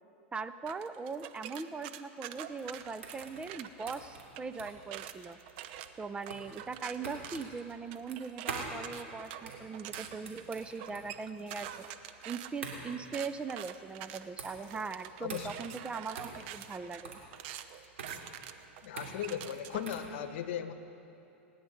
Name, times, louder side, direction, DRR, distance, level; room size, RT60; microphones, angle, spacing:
voice 1, 0.3-5.4 6.0-11.9 12.3-17.1, right 4 dB, 15° right, 11 dB, 0.5 m, -40 dB
sound 1, 0.7-3.9 4.4-20.0, right 11 dB, 60° right, 0.8 m, -46 dB
sound 2, 2.4-20.1, right 5 dB, 85° right, 2.9 m, -46 dB
voice 2, 15.2-15.5 18.8-20.7, left 9 dB, 65° left, 10 dB, 1.1 m, -37 dB
26.5 x 10.0 x 5.2 m, 2.9 s
hypercardioid pair, 110°, 7 cm